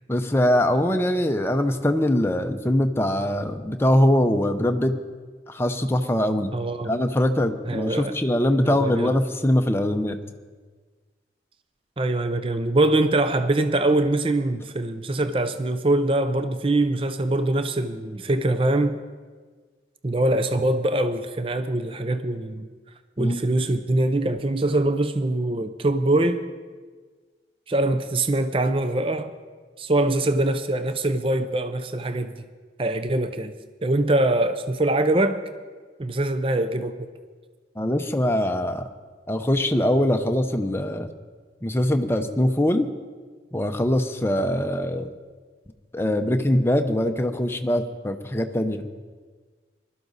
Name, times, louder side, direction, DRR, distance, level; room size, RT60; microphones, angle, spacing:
voice 1, 0.1-5.0 5.5-6.5 6.9-10.2 23.2-23.5 37.8-38.9 39.3-41.1 41.6-42.9 43.5-45.1 45.9-48.9, left 1 dB, 15° left, 6 dB, 0.7 m, -22 dB
voice 2, 6.5-7.0 7.7-8.2 8.6-9.1 12.0-19.0 20.0-22.7 23.2-26.4 27.7-29.3 29.8-32.5 32.8-33.5 33.8-35.4 36.0-37.1, right 2 dB, 30° right, 9 dB, 0.5 m, -23 dB
20.5 x 12.5 x 4.1 m, 1.5 s
head